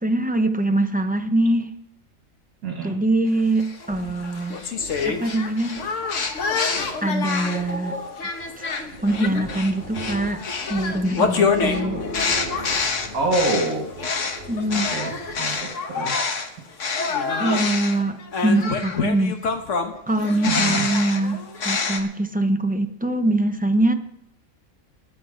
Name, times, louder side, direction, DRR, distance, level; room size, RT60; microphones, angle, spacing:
voice 1, 0.0-1.7 2.8-4.6 5.1-5.8 7.0-8.0 9.0-10.4 10.7-12.1 14.5-14.9 17.4-19.4 20.1-23.9, right 1 dB, 15° right, 7 dB, 0.3 m, -23 dB
voice 2, 2.6-3.0 13.1-13.9 14.7-16.2 20.4-20.9, right 2 dB, 75° right, 1 dB, 2.3 m, -26 dB
sound 1, 3.6-7.7 8.2-16.5 16.8-22.0, left 5 dB, 60° left, 1.5 m, -26 dB
sound 2, 4.8-15.6, left 1 dB, 40° left, 2.9 m, -37 dB
20.5 x 7.8 x 5.0 m, 0.83 s
omnidirectional pair, 1.5 m